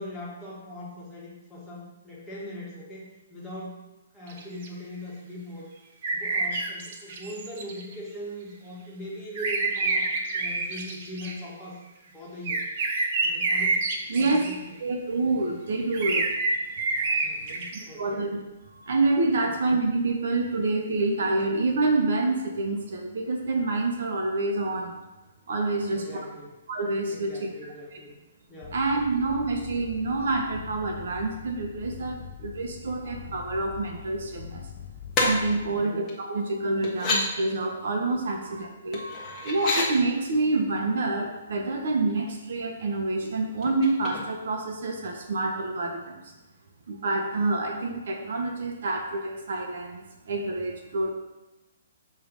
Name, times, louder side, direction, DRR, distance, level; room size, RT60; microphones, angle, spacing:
voice 1, 0.0-3.8 4.1-5.7 6.1-11.8 12.1-12.6 13.2-13.9 14.1-14.8 17.2-18.3 19.4-19.6 25.9-26.5 27.1-28.1 28.5-28.8 35.7-36.0 38.4-38.5, left 1 dB, 5° left, -8 dB, 1.7 m, -40 dB
sound 1, 4.3-4.7 6.0-7.9 9.3-11.3 12.4-14.5 15.9-17.8, right 3 dB, 45° right, 0.8 m, -27 dB
voice 2, 14.1-14.4 14.8-16.2 16.8-17.2 17.7-18.4 18.7-25.0 25.5-26.1 26.7-27.5 28.7-34.7 35.2-46.2 46.9-51.1, right 2 dB, 65° right, 2 dB, 1.0 m, -27 dB
sound 2, 28.6-35.7, left 9 dB, 35° left, 0.5 m, -43 dB
sound 3, 35.1-35.3 36.1-36.2 36.8-37.2 38.9-39.9 41.6-41.8 42.1-42.6 43.6-44.6 44.9-45.0, left 3 dB, 20° left, 1.2 m, -29 dB
6.7 x 3.2 x 5.2 m, 1.1 s
hypercardioid pair, 155°, 0 cm